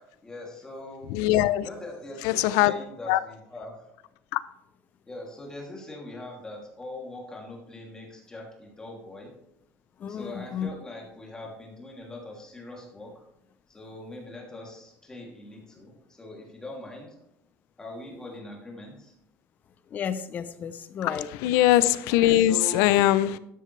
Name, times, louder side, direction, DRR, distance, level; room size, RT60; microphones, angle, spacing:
voice 1, 0.0-1.1 1.6-3.9 5.1-9.3 10.1-13.2 13.7-17.1 17.8-19.1 22.1-22.9, left 1 dB, 15° left, 2.9 m, -42 dB
voice 2, 1.1-1.6 2.2-2.7 3.1-3.2 4.3-4.4 21.0-23.4, left 14 dB, 85° left, 0.6 m, -21 dB
voice 3, 10.0-10.7 19.9-21.3, left 7 dB, 35° left, 0.7 m, -33 dB
12.5 x 10.0 x 3.4 m
cardioid pair, 155°, 5 cm